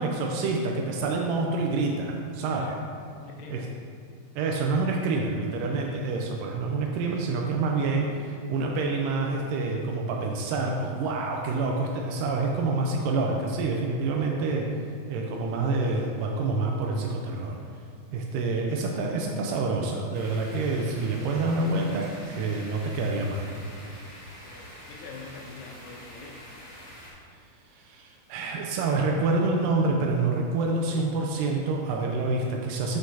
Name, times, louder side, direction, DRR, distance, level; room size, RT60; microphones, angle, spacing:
voice 1, 0.0-2.7 3.5-3.7 4.4-14.7 15.1-17.6 18.1-23.5 27.7-33.0, right 3 dB, 90° right, 0 dB, 2.2 m, -27 dB
voice 2, 2.5-2.8 3.2-3.7 24.4-26.4, left 4 dB, 70° left, -1 dB, 2.1 m, -44 dB
sound 1, 20.1-27.1, equal, 25° right, 0.6 m, -46 dB
7.7 x 6.5 x 2.8 m, 2.3 s
omnidirectional pair, 3.8 m